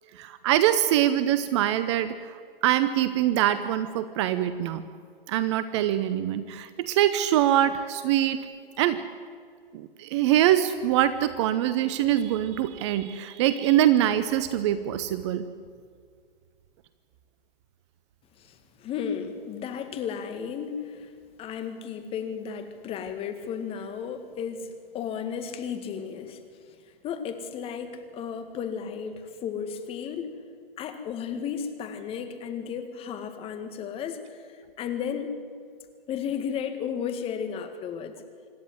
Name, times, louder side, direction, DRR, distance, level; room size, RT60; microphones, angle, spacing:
voice 1, 0.2-2.1 2.6-4.8 5.3-8.4 8.8-9.0 9.7-15.5, right 12 dB, 30° right, 13 dB, 0.8 m, -24 dB
voice 2, 18.4-21.1 21.4-26.4 27.0-30.3 30.8-35.3 36.1-38.2, left 7 dB, 20° left, 8 dB, 1.8 m, -34 dB
26.0 x 12.5 x 9.6 m, 2.1 s
figure-of-eight pair, 130°, 29 cm